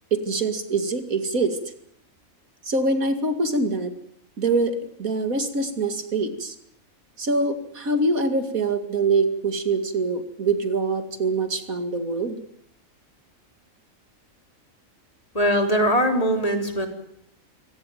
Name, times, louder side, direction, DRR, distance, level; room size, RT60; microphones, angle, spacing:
voice 1, 0.1-1.6 2.7-3.9 4.4-6.5 7.2-12.4, right 3 dB, 85° right, 8 dB, 2.8 m, -24 dB
voice 2, 15.3-16.9, equal, 25° left, 4 dB, 3.7 m, -21 dB
26.0 x 17.0 x 9.3 m, 0.70 s
omnidirectional pair, 1.4 m